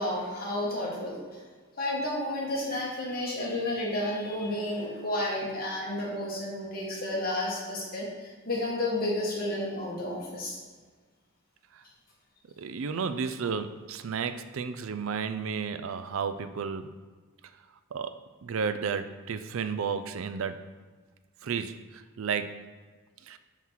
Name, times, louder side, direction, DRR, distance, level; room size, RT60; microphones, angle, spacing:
voice 1, 0.0-1.4 1.8-10.6, left 1 dB, 40° left, -4 dB, 1.9 m, -31 dB
voice 2, 12.6-16.9 17.9-20.6 21.4-22.6 23.2-23.4, right 6 dB, 65° right, 10 dB, 0.4 m, -32 dB
5.8 x 4.6 x 5.8 m, 1.4 s
head